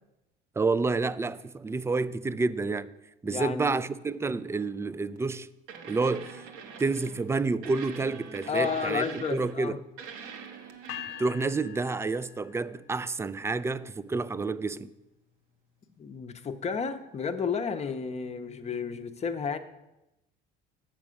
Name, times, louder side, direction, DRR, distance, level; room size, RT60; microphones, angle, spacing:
voice 1, 0.6-2.9 3.2-5.5 5.9-6.4 6.8-9.8 11.2-14.9, right 3 dB, 15° right, 0.3 m, -29 dB
voice 2, 3.2-3.8 8.5-9.8 16.0-19.6, left 6 dB, 30° left, 0.7 m, -32 dB
sound 1, 5.1-5.3 5.7-7.2 7.6-9.7 10.0-11.3 13.6-13.7, right 6 dB, 80° right, 1.1 m, -44 dB
sound 2, 10.9-13.0, left 10 dB, 85° left, 0.7 m, -43 dB
7.3 x 5.9 x 6.2 m
supercardioid pair, 90°, 21 cm